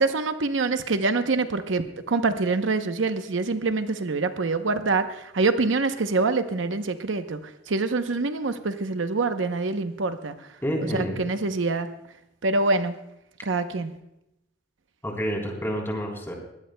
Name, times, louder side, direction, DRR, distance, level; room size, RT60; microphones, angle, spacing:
voice 1, 0.0-7.4 7.7-10.3 10.9-11.9 12.4-12.9 13.4-13.9, right 3 dB, 80° right, 9 dB, 0.8 m, -25 dB
voice 2, 10.6-11.2 15.0-16.3, equal, 15° left, 0 dB, 3.5 m, -28 dB
21.5 x 17.5 x 2.2 m, 0.87 s
head